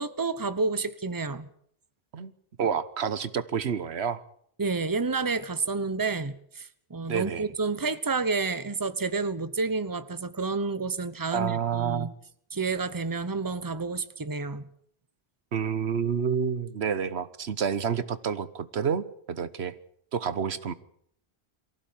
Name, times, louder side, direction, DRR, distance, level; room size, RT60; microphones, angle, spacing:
voice 1, 0.0-1.5 4.6-12.1 12.5-14.7, right 4 dB, 20° right, 1.0 m, -30 dB
voice 2, 2.6-4.2 7.1-7.5 11.3-12.1 15.5-19.7 20.1-20.7, right 7 dB, 90° right, 1.3 m, -29 dB
23.5 x 15.5 x 8.7 m
omnidirectional pair, 1.1 m